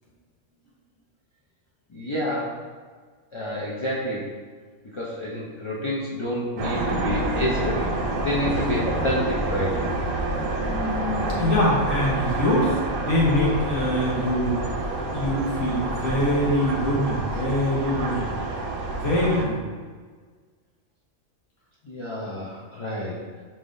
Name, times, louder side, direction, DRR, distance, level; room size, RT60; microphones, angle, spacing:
voice 1, 1.9-2.6 3.3-4.3 4.9-7.9 8.2-9.8 11.0-11.1 21.8-23.2, left 1 dB, 50° left, -5 dB, 0.3 m, -28 dB
sound 1, 6.6-19.4, right 2 dB, 80° right, 1.0 m, -28 dB
voice 2, 10.6-18.5 18.9-19.6, left 1 dB, 85° left, -5 dB, 1.5 m, -24 dB
4.8 x 3.5 x 2.6 m, 1.5 s
omnidirectional pair, 1.3 m